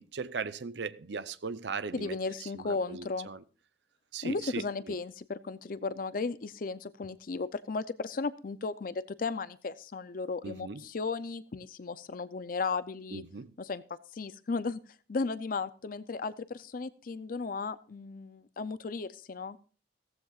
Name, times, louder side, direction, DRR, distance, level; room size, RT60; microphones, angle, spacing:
voice 1, 0.0-3.4 4.1-5.0 10.4-10.8 13.1-13.5, right 5 dB, 75° right, 0.7 m, -39 dB
voice 2, 1.9-3.3 4.2-13.2 13.6-14.8 15.1-19.6, left 4 dB, 50° left, 0.5 m, -35 dB
16.0 x 14.5 x 2.4 m
head